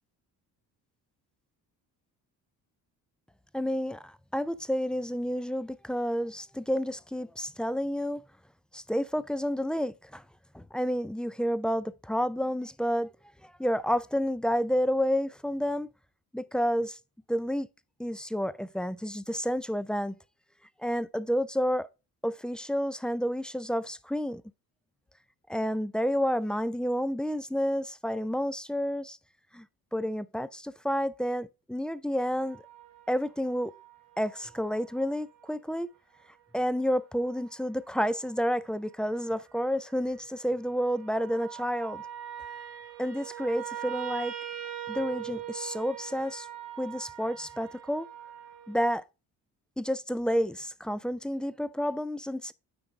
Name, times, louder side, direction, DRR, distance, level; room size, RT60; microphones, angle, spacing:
voice 1, 3.5-8.2 8.7-10.2 10.5-13.1 13.4-15.9 16.3-17.0 17.3-17.7 18.0-20.1 20.8-21.9 22.2-24.4 25.5-29.2 29.5-29.7 29.9-32.6 33.1-33.7 34.2-35.9 36.5-42.0 43.0-44.3 44.9-46.5 46.8-48.1 48.7-49.0 49.8-52.5, equal, ahead, 0.3 m, -30 dB
sound 1, 32.4-35.6 36.6-36.7 37.2-37.6 38.3-38.7 39.0-48.8, right 10 dB, 90° right, 1.6 m, -43 dB
9.4 x 4.5 x 3.5 m
cardioid pair, 80°, 40 cm